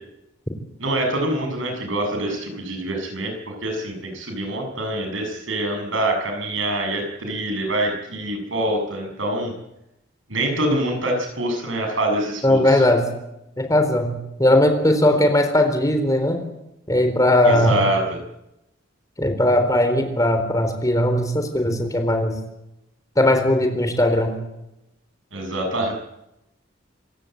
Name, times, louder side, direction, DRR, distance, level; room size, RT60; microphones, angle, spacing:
voice 1, 0.8-9.5 10.3-12.8 17.4-18.2 25.3-25.9, right 1 dB, 90° right, 4 dB, 6.7 m, -25 dB
voice 2, 12.4-13.0 13.6-16.4 16.9-17.7 19.2-22.4 23.2-24.4, left 1 dB, 20° left, 6 dB, 4.0 m, -18 dB
27.0 x 17.0 x 7.9 m, 0.88 s
head